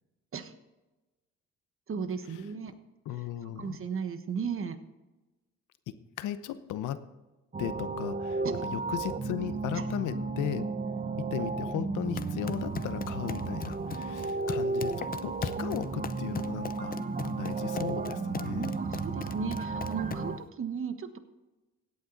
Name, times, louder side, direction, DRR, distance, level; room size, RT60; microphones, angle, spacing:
voice 1, 1.9-2.7 3.4-4.8 8.4-8.6 9.7-9.9 18.5-21.2, right 6 dB, 45° right, 10 dB, 1.2 m, -35 dB
voice 2, 3.1-3.8 5.9-7.0 7.6-10.7 11.3-16.9 17.2-18.7, left 11 dB, 85° left, 12 dB, 0.9 m, -36 dB
sound 1, 7.5-20.4, right 3 dB, 25° right, 0.9 m, -34 dB
sound 2, 12.0-20.4, left 6 dB, 30° left, 0.6 m, -40 dB
16.5 x 9.0 x 4.0 m, 1.1 s
cardioid pair, 90°, 30 cm